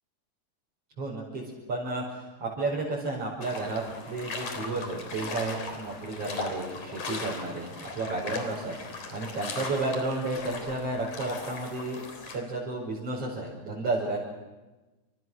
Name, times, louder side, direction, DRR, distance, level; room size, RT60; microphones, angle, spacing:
voice 1, 1.0-1.4 1.7-12.0 12.3-14.2, right 2 dB, 50° right, -5 dB, 6.4 m, -32 dB
sound 1, 3.4-12.4, left 4 dB, 75° left, 5.1 m, -38 dB
28.5 x 27.5 x 6.3 m, 1.1 s
omnidirectional pair, 3.4 m